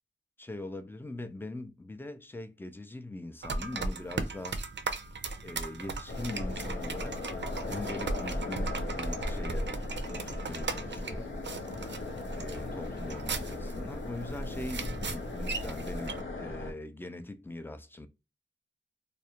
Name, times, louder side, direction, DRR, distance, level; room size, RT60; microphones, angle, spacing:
voice 1, 0.4-4.6 5.4-9.8 10.1-11.3 12.3-18.1, left 2 dB, 10° left, 0.3 m, -41 dB
sound 1, 3.4-16.2, right 3 dB, 60° right, 0.4 m, -38 dB
sound 2, 6.1-16.7, left 2 dB, 80° left, 0.6 m, -37 dB
2.3 x 2.1 x 2.8 m
wide cardioid pair, 60°, 20 cm